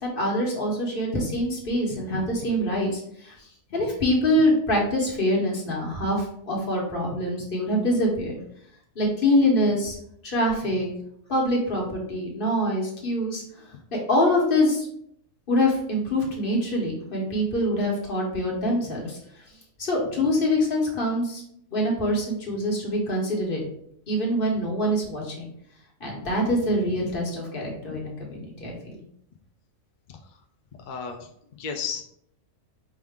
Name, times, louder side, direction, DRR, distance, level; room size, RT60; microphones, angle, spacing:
voice 1, 0.0-3.4 3.7-8.4 8.9-10.0 10.2-10.9 11.3-13.4 13.9-14.9 15.5-19.2 19.8-21.4 21.7-23.6 24.1-25.5 26.0-29.0, left 1 dB, 45° left, -2 dB, 1.2 m, -25 dB
voice 2, 1.9-2.5 3.7-3.9 7.1-7.2 10.6-10.8 27.9-28.0 30.1-30.4 30.7-32.0, left 6 dB, 75° left, 4 dB, 0.4 m, -36 dB
4.7 x 2.5 x 3.5 m, 0.69 s
omnidirectional pair, 1.4 m